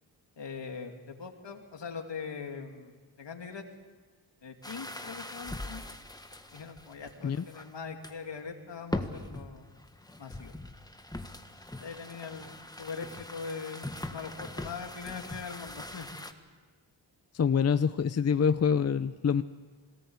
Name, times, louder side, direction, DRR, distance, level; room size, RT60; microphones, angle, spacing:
voice 1, 0.4-3.6 4.4-5.8 6.5-9.7 10.2-10.6 11.8-16.1, left 5 dB, 65° left, 4 dB, 2.8 m, -41 dB
sound 1, 4.6-7.7 8.0-8.4 8.8-16.3, left 1 dB, 10° left, 1.6 m, -41 dB
voice 2, 17.3-19.4, left 6 dB, 35° left, 12 dB, 0.6 m, -26 dB
22.0 x 18.5 x 8.2 m, 1.4 s
cardioid pair, 65°, 47 cm